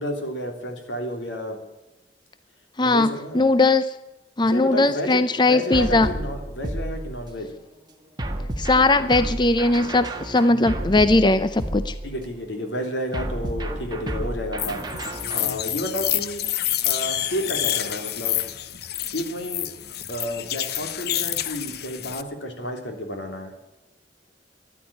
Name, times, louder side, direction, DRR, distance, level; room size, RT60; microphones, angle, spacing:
voice 1, 0.0-1.6 2.8-3.4 4.5-7.5 12.0-14.8 15.3-16.4 16.8-18.4 19.1-19.7 20.1-23.5, equal, 90° left, 4 dB, 3.4 m, -31 dB
voice 2, 2.8-3.9 4.4-6.1 8.6-11.9, left 2 dB, 25° left, 12 dB, 0.6 m, -19 dB
sound 1, 5.7-7.4 8.2-12.4 13.1-15.6, right 1 dB, 25° right, 1.7 m, -31 dB
sound 2, 14.6-22.2, left 12 dB, 60° left, 0.7 m, -28 dB
13.5 x 11.0 x 9.9 m, 1.0 s
head